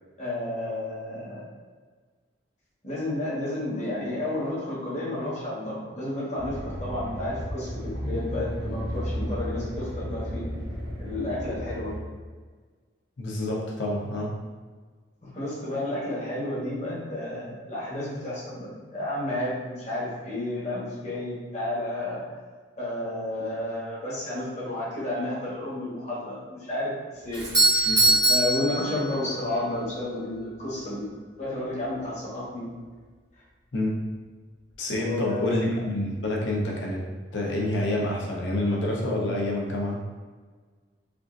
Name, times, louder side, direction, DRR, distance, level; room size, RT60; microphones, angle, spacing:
voice 1, 0.2-1.5 2.8-10.5 11.0-11.9 15.2-22.2 22.8-27.4 27.7-28.0 28.2-31.1 31.4-32.7 35.0-35.6, left 1 dB, 40° left, -8 dB, 1.1 m, -31 dB
sound 1, 6.3-12.0, equal, 60° right, 1.1 m, -33 dB
voice 2, 13.2-14.3 27.9-28.0 33.7-34.0 34.8-37.0 37.3-40.0, left 1 dB, 90° left, -3 dB, 0.7 m, -27 dB
Doorbell, 27.3-29.5, right 2 dB, 25° right, 1.0 m, -22 dB
3.4 x 2.5 x 2.5 m, 1.5 s
head